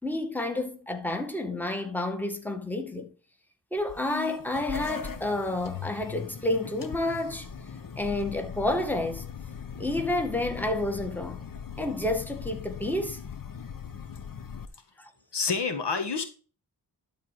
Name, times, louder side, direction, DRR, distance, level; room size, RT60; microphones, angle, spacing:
voice 1, 0.0-3.1 3.7-7.5 8.0-9.2 9.8-11.5 11.8-13.2 15.0-15.1, left 1 dB, 5° left, 2.0 m, -30 dB
sound 1, 3.8-14.7, left 7 dB, 50° left, 1.2 m, -39 dB
voice 2, 15.3-16.2, left 5 dB, 70° left, 1.9 m, -28 dB
12.0 x 4.2 x 5.0 m
cardioid pair, 70°, 42 cm